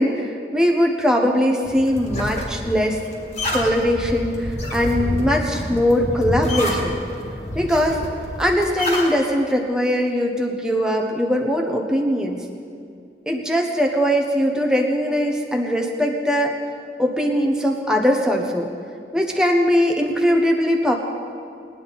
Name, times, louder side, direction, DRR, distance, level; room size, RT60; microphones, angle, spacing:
voice 1, 0.0-3.0 3.5-7.0 7.5-8.0 8.4-12.5 13.3-16.5 17.0-18.7 19.1-20.9, equal, 5° right, 1 dB, 1.0 m, -20 dB
sound 1, 1.6-9.1, left 1 dB, 40° left, 2.1 m, -28 dB
20.0 x 10.0 x 4.0 m, 2.4 s
head